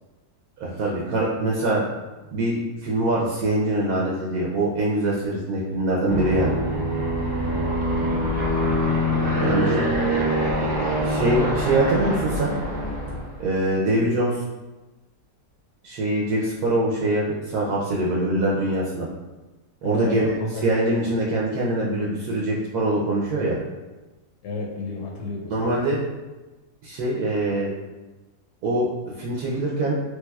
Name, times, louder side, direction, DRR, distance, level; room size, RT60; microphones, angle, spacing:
voice 1, 0.6-1.8 2.3-6.6 9.4-9.8 11.0-12.5 13.4-14.4 15.8-19.1 19.8-20.3 20.6-23.6 25.5-26.0 26.8-27.7 28.6-28.9 29.2-30.0, right 1 dB, 75° right, -5 dB, 1.1 m, -23 dB
Aircraft, 6.1-13.4, equal, 50° right, 0.7 m, -24 dB
voice 2, 9.2-9.9 19.8-20.7 24.4-25.9, left 3 dB, 80° left, -2 dB, 1.1 m, -32 dB
3.2 x 3.1 x 2.2 m, 1.1 s
omnidirectional pair, 1.7 m